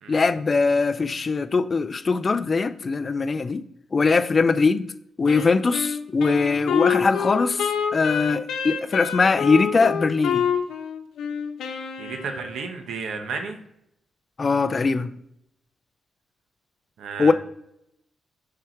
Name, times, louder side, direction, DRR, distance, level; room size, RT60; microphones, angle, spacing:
voice 1, 0.1-3.6 3.9-4.9 5.2-10.5 14.4-15.1 17.2-17.3, left 4 dB, 35° left, 0.4 m, -21 dB
Wind instrument woodwind instrument, 5.3-12.7, left 7 dB, 90° left, 0.9 m, -27 dB
voice 2, 12.0-13.6 17.0-17.3, right 4 dB, 80° right, 1.1 m, -32 dB
6.5 x 4.7 x 4.5 m
cardioid pair, 120°, 0 cm